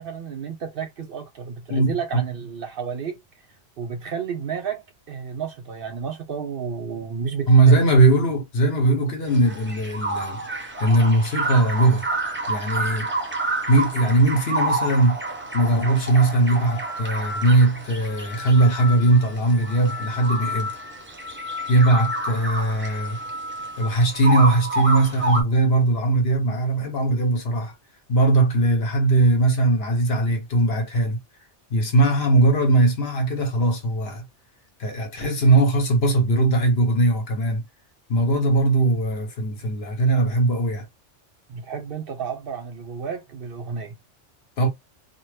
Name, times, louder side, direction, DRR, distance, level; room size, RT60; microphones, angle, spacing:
voice 1, 0.0-3.2 3.8-7.5 21.9-22.0 41.5-44.0, right 6 dB, 60° right, 0.7 m, -32 dB
voice 2, 1.7-2.2 7.5-12.1 12.5-13.1 13.7-15.2 15.5-20.7 21.7-23.2 23.8-27.7 28.1-31.2 31.7-34.3 34.8-37.6 38.1-40.9 44.6-44.7, right 2 dB, 60° left, 1.0 m, -20 dB
sound 1, 9.3-25.4, right 2 dB, 15° right, 0.4 m, -29 dB
2.8 x 2.2 x 3.1 m
omnidirectional pair, 1.2 m